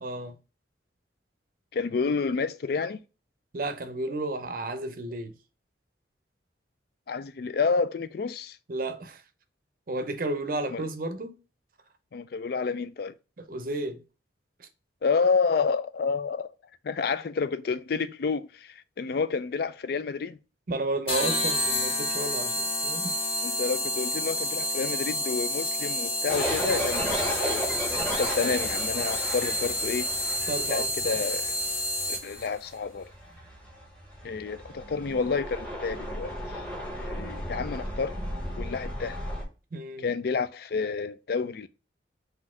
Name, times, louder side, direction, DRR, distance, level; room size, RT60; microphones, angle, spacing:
voice 1, 0.0-0.4 3.5-5.3 8.7-9.2 9.9-11.3 13.4-14.0 14.6-14.7 20.7-23.2 26.7-26.9 30.5-31.2 39.7-40.1, right 2 dB, 50° right, 0.6 m, -32 dB
voice 2, 1.7-3.0 7.1-8.6 10.7-10.8 12.1-13.1 15.0-16.5 16.8-20.4 23.4-30.1 30.7-31.5 32.1-33.1 34.2-36.6 37.0-38.2 38.6-39.2 40.0-41.7, left 5 dB, 55° left, 0.4 m, -29 dB
sound 1, 21.1-32.5, left 1 dB, 30° left, 1.2 m, -29 dB
sound 2, 26.3-39.4, equal, 5° left, 0.9 m, -35 dB
4.2 x 2.7 x 4.2 m
head